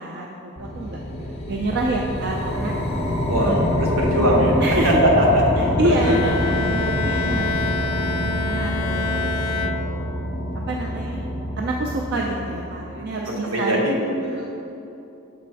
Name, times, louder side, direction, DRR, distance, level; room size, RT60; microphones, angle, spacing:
voice 1, 0.0-2.8 3.4-3.6 4.6-5.0 5.6-10.0 10.7-11.3 11.6-13.9 14.2-14.5, right 1 dB, 50° right, -1 dB, 0.4 m, -28 dB
sound 1, 0.6-13.1, left 1 dB, 30° left, 0.6 m, -26 dB
voice 2, 3.3-4.5 4.8-5.6 5.8-6.1 12.9-14.4, equal, 70° right, -3 dB, 1.2 m, -21 dB
Bowed string instrument, 6.0-10.4, left 4 dB, 85° left, 0.4 m, -28 dB
7.0 x 3.4 x 4.5 m, 2.8 s
head